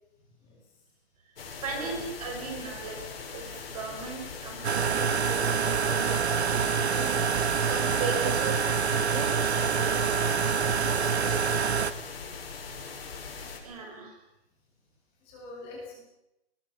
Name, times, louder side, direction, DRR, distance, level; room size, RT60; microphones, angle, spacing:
sound 1, 1.4-13.6, left 5 dB, 60° left, 7.7 m, -41 dB
voice 1, 1.6-3.0 3.3-8.6 8.9-10.4 10.9-11.5 13.6-14.2, right 4 dB, 35° right, 2 dB, 5.6 m, -38 dB
sound 2, 4.6-11.9, right 6 dB, 80° right, 1.7 m, -26 dB
voice 2, 15.2-16.0, left 2 dB, 15° left, -2 dB, 7.9 m, -44 dB
23.0 x 21.5 x 7.3 m, 0.87 s
hypercardioid pair, 175°, 32 cm